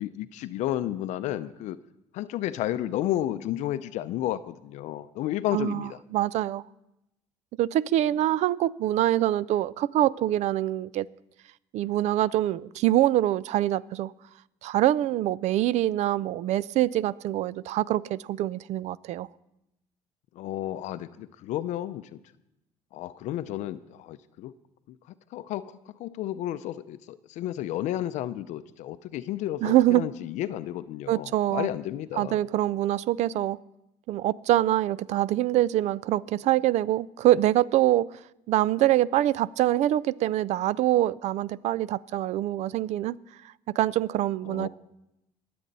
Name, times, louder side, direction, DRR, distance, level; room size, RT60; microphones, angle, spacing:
voice 1, 0.0-1.8 2.1-6.0 20.4-22.2 22.9-24.5 24.9-25.0 25.3-25.7 26.0-32.4 44.5-44.7, left 13 dB, 75° left, 0.5 m, -32 dB
voice 2, 5.5-6.6 7.6-11.1 11.7-14.1 14.6-19.3 29.6-30.0 31.1-31.7 32.1-33.6 34.1-38.1 38.5-43.2 43.8-44.7, right 14 dB, 65° right, 0.4 m, -24 dB
21.5 x 7.8 x 4.1 m
cardioid pair, 95°, 12 cm